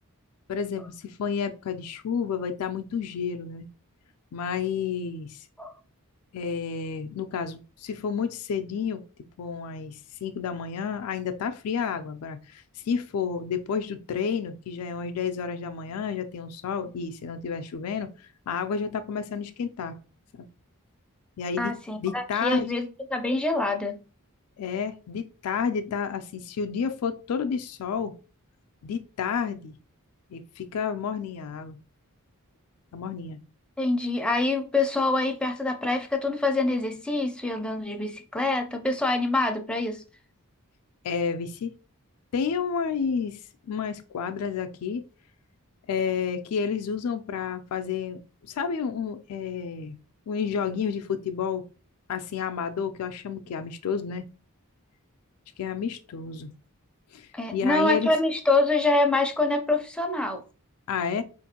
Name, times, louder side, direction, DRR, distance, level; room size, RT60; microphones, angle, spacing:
voice 1, 0.5-3.7 4.3-5.5 6.3-9.0 9.4-18.1 18.5-20.0 20.3-20.5 21.4-21.7 22.0-22.7 24.6-28.1 28.8-29.7 30.3-31.8 32.9-33.4 41.0-41.8 42.3-43.4 43.7-45.0 45.9-49.9 50.3-51.6 52.1-54.2 55.6-56.5 57.1-58.1 60.9-61.2, left 6 dB, 75° left, 0.4 m, -30 dB
voice 2, 21.6-22.8 23.1-24.0 33.8-40.0 57.3-60.4, left 2 dB, 5° left, 0.5 m, -25 dB
4.4 x 2.5 x 2.8 m
head